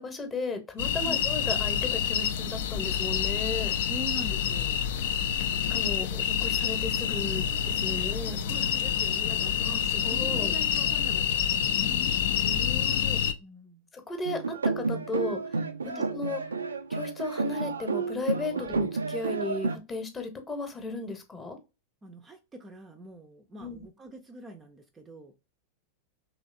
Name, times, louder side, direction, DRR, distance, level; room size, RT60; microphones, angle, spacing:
voice 1, 0.0-3.7 5.7-8.4 9.6-10.5 12.4-13.2 14.1-15.4 16.1-16.4 16.9-21.6 23.6-23.9, left 2 dB, 20° left, 0.9 m, -35 dB
sound 1, 0.8-13.3, left 9 dB, 55° left, 0.4 m, -27 dB
voice 2, 3.9-4.8 7.9-12.1 13.4-13.9 15.8-16.1 18.5-18.7 22.0-25.4, right 1 dB, 20° right, 0.5 m, -44 dB
sound 2, 14.3-19.8, right 4 dB, 75° right, 0.4 m, -31 dB
3.2 x 3.1 x 2.5 m
figure-of-eight pair, 90°, 0 cm